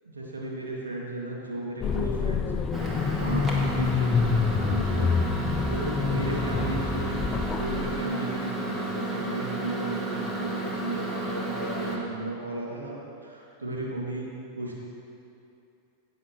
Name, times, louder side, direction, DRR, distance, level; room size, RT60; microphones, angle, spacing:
voice 1, 0.0-2.9 3.2-4.1 4.6-5.1 5.7-7.2 7.6-13.0 13.2-14.3 14.6-14.8, right 1 dB, 75° right, -4 dB, 2.2 m, -34 dB
sound 1, 1.8-8.0, left 5 dB, 25° left, 0.5 m, -27 dB
Microwave oven, 2.7-12.0, right 2 dB, 15° right, 1.8 m, -32 dB
17.0 x 8.3 x 3.1 m, 2.7 s
figure-of-eight pair, 90°, 0 cm